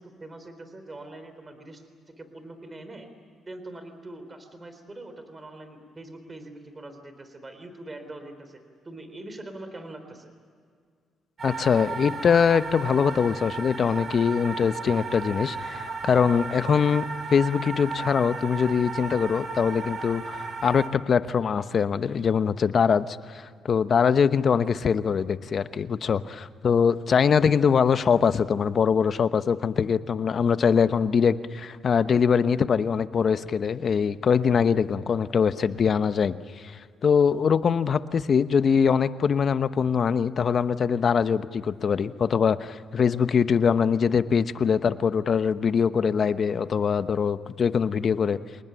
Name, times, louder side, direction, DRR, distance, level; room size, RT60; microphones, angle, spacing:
voice 1, 0.0-3.1 3.4-10.3, right 2 dB, 25° right, 8 dB, 3.9 m, -43 dB
voice 2, 11.4-48.4, left 6 dB, 50° left, 12 dB, 1.0 m, -23 dB
sound 1, 11.4-20.9, right 4 dB, 45° right, 3.4 m, -35 dB
27.0 x 20.0 x 9.1 m, 2.1 s
cardioid pair, 90°, 0 cm